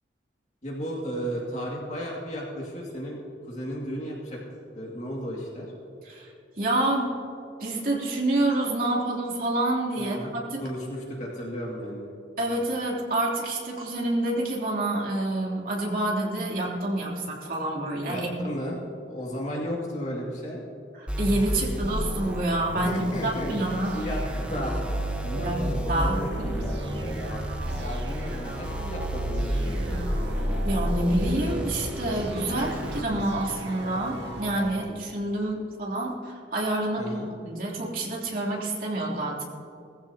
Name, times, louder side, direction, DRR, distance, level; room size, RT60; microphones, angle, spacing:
voice 1, 0.6-3.2 3.5-4.4 4.7-5.7 9.9-10.3 10.6-12.1 18.1-18.8 19.1-20.6 22.8-24.2 24.5-24.7 25.2-30.0 37.0-37.3, equal, 40° left, -3 dB, 2.3 m, -34 dB
voice 2, 6.0-7.1 7.6-10.6 12.4-18.4 21.0-24.1 25.3-25.6 25.9-26.6 30.6-39.4, right 1 dB, 50° right, -4 dB, 3.2 m, -28 dB
sound 1, 21.1-33.0, equal, 5° right, 1.1 m, -31 dB
sound 2, 23.8-34.8, right 1 dB, 80° right, 1.8 m, -36 dB
20.0 x 15.0 x 2.9 m, 2.7 s
head